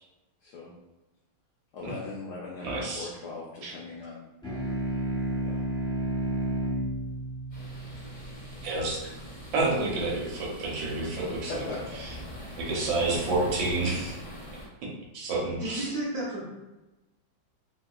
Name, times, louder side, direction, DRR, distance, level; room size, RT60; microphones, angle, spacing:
voice 1, 0.4-0.7 1.7-4.2 5.4-5.6 11.4-12.0, left 3 dB, 70° left, -5 dB, 1.1 m, -39 dB
voice 2, 2.6-3.1 3.6-3.7 8.6-9.0 9.5-11.6 12.0-12.1 12.6-14.2 15.1-15.9, right 2 dB, 80° right, -3 dB, 1.6 m, -29 dB
sound 1, 4.4-9.3, right 1 dB, 5° left, 0.3 m, -32 dB
sound 2, 7.5-14.7, equal, 30° left, 0.8 m, -42 dB
voice 3, 15.4-16.5, right 1 dB, 60° right, -8 dB, 1.3 m, -33 dB
3.5 x 2.7 x 2.3 m, 1.0 s
omnidirectional pair, 2.1 m